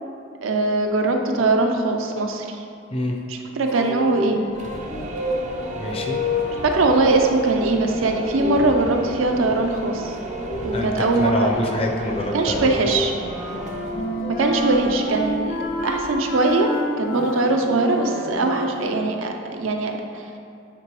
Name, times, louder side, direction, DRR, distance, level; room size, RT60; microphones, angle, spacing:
voice 1, 0.4-2.6 3.3-4.5 6.6-10.1 10.6-11.6 12.3-13.1 14.4-16.7 17.0-20.2, right 2 dB, 85° right, 3 dB, 0.6 m, -21 dB
sound 1, 3.7-15.6 16.7-18.9, left 1 dB, 75° left, 0.8 m, -31 dB
sound 2, 4.5-16.4, right 2 dB, 35° right, 0.5 m, -36 dB
voice 2, 5.7-6.2 10.7-12.7, left 1 dB, 30° left, 1 dB, 0.6 m, -26 dB
Wind instrument woodwind instrument, 13.2-18.8, equal, 50° left, 0.9 m, -29 dB
8.6 x 3.7 x 3.0 m, 2.6 s
head